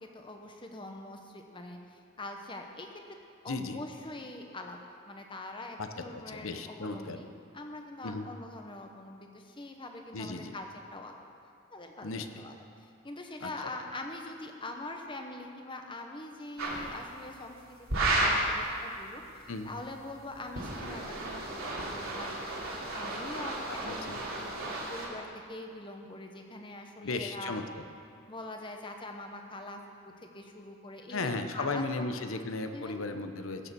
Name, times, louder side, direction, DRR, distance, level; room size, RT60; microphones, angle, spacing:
voice 1, 0.0-2.9 3.4-7.3 7.5-11.3 11.7-22.3 22.7-24.5 24.9-27.6 28.3-32.1 32.7-33.1, left 2 dB, 25° left, 3 dB, 1.1 m, -44 dB
voice 2, 3.5-3.8 5.8-7.2 8.0-8.3 10.1-10.6 12.0-12.4 13.4-13.7 19.5-19.7 23.7-24.2 27.0-27.8 31.1-33.7, left 3 dB, 70° left, 7 dB, 0.9 m, -36 dB
sound 1, 16.6-16.8 17.9-18.5 20.3-25.1, right 2 dB, 80° right, 2.8 m, -33 dB
16.0 x 6.8 x 6.9 m, 2.4 s
head